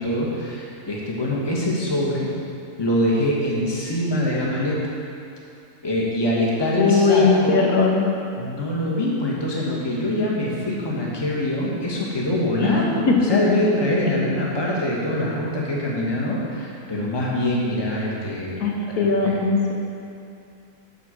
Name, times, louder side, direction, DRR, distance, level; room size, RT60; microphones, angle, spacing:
voice 1, 0.0-2.3 2.8-4.9 5.8-7.7 8.4-18.6 18.9-19.3, left 1 dB, 15° left, -5 dB, 1.4 m, -24 dB
voice 2, 6.8-8.1 12.6-13.2 18.6-19.7, left 4 dB, 75° left, 0 dB, 1.4 m, -19 dB
11.0 x 4.5 x 6.5 m, 2.6 s
omnidirectional pair, 1.7 m